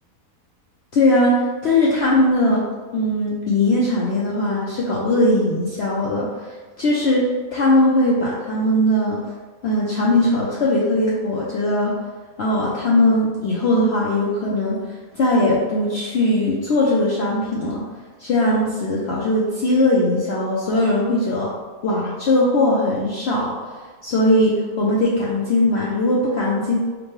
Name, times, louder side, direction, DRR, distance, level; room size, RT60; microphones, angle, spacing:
voice 1, 0.9-2.6 2.9-6.5 6.8-9.2 9.6-12.0 12.4-17.8 18.2-21.5 21.8-23.6 24.0-26.8, left 1 dB, 60° left, -5 dB, 0.7 m, -19 dB
5.1 x 2.2 x 3.1 m, 1.4 s
omnidirectional pair, 1.5 m